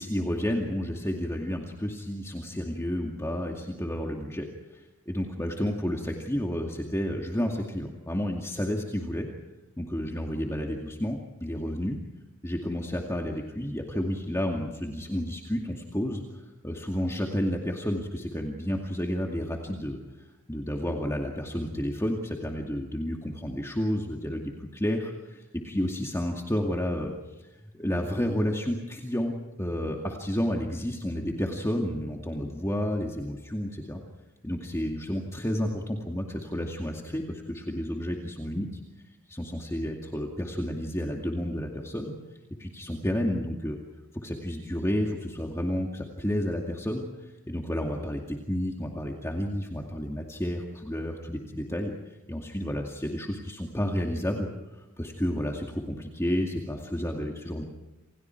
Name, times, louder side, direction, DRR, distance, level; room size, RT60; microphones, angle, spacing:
voice 1, 0.0-4.5 4.7-9.3 9.8-12.0 12.4-27.1 27.4-27.5 27.7-29.3 29.6-34.0 34.4-38.7 39.3-42.1 42.6-43.8 44.1-57.6, equal, 15° left, 0 dB, 2.3 m, -31 dB
28.5 x 28.5 x 4.7 m, 1.0 s
head